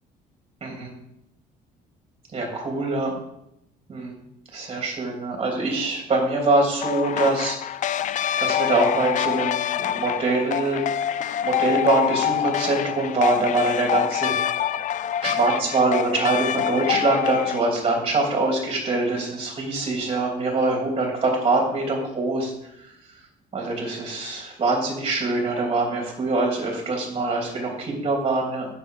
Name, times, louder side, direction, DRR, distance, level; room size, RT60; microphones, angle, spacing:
voice 1, 0.6-0.9 2.3-3.2 3.9-4.2 4.5-7.6 8.4-10.8 11.4-14.3 15.2-22.5 23.5-28.7, right 2 dB, 35° right, 0 dB, 3.3 m, -24 dB
sound 1, 6.8-17.6, left 10 dB, 50° left, 0.4 m, -26 dB
9.5 x 7.0 x 5.0 m, 0.80 s
cardioid pair, 110°, 17 cm